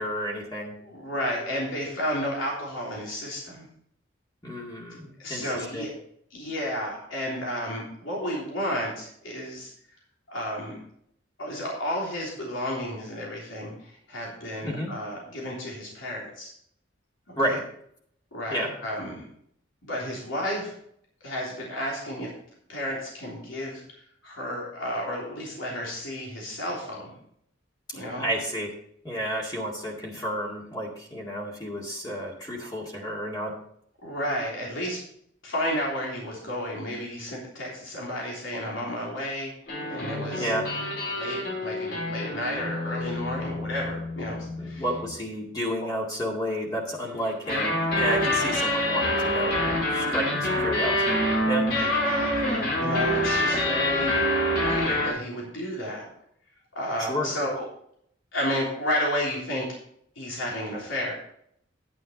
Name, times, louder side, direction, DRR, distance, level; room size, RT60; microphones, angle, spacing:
voice 1, 0.0-0.8 4.4-5.9 14.6-14.9 17.4-17.6 18.5-18.7 27.9-28.7 29.0-33.5 40.4-40.7 44.6-51.2 51.5-51.7 57.0-57.3, equal, 20° left, -2 dB, 2.1 m, -31 dB
voice 2, 0.8-3.7 5.2-5.9 6.3-9.7 10.3-10.8 11.4-16.5 17.3-17.6 18.3-19.2 19.8-20.8 21.2-22.3 22.7-23.8 24.2-27.2 27.9-28.2 34.0-35.0 35.4-39.5 39.9-40.5 41.1-44.8 45.8-45.9 51.7-54.2 54.5-56.1 56.7-57.7 58.3-59.7 60.1-61.1, equal, 85° left, -3 dB, 3.4 m, -32 dB
sound 1, 39.7-45.1 47.3-55.1, left 1 dB, 55° left, 4.8 m, -26 dB
10.0 x 9.3 x 4.0 m, 0.68 s
head